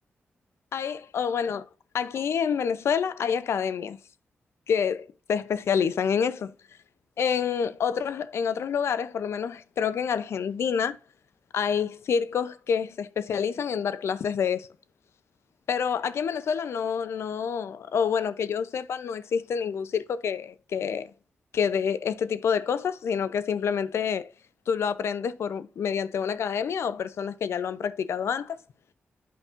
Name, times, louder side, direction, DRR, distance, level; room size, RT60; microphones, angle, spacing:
voice 1, 0.7-1.6 1.9-4.0 4.7-6.5 7.2-11.0 11.5-14.7 15.7-21.1 21.5-24.3 24.7-28.6, left 7 dB, 75° left, 0.6 m, -27 dB
8.5 x 5.3 x 2.5 m
supercardioid pair, 50°, 5 cm